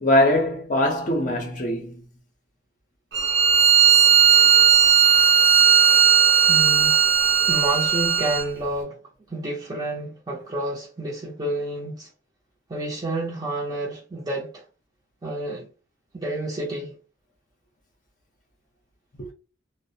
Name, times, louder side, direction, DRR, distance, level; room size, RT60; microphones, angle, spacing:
voice 1, 0.0-2.0 19.2-19.3, left 1 dB, 40° left, 0.6 m, -22 dB
Bowed string instrument, 3.1-8.5, right 8 dB, 65° right, 0.7 m, -16 dB
voice 2, 6.5-7.0 7.5-9.0 9.3-12.1 12.7-14.6 15.2-15.7 16.1-16.9, right 1 dB, 20° right, 0.5 m, -29 dB
2.3 x 2.0 x 2.7 m
head